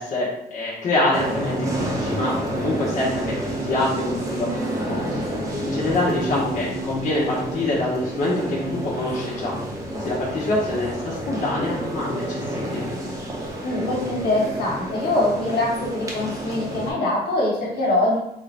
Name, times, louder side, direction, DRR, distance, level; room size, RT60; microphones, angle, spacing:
voice 1, 0.0-3.3 3.6-5.3 5.7-9.6 10.0-12.4 12.7-12.9, left 2 dB, 50° left, -6 dB, 0.9 m, -25 dB
sound 1, 1.1-16.9, right 1 dB, 20° right, 0.7 m, -29 dB
voice 2, 13.6-18.2, left 2 dB, 85° left, -4 dB, 1.5 m, -23 dB
3.6 x 2.6 x 3.3 m, 0.83 s
cardioid pair, 165°, 16 cm